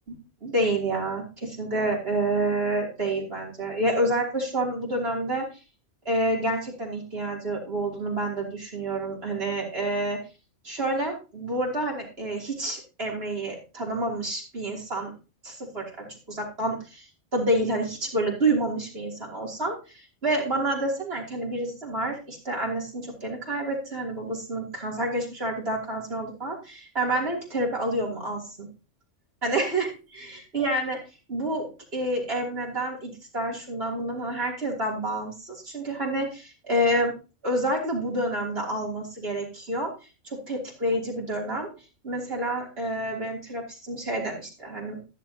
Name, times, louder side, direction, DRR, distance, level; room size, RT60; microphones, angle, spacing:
voice 1, 0.1-5.5 6.0-10.2 10.6-15.1 15.4-17.1 17.3-28.7 29.4-29.9 30.1-31.0 31.3-37.1 37.4-39.9 40.2-41.7 42.0-45.0, right 1 dB, 55° right, -2 dB, 3.3 m, -28 dB
13.5 x 11.0 x 2.9 m, 0.32 s
omnidirectional pair, 1.2 m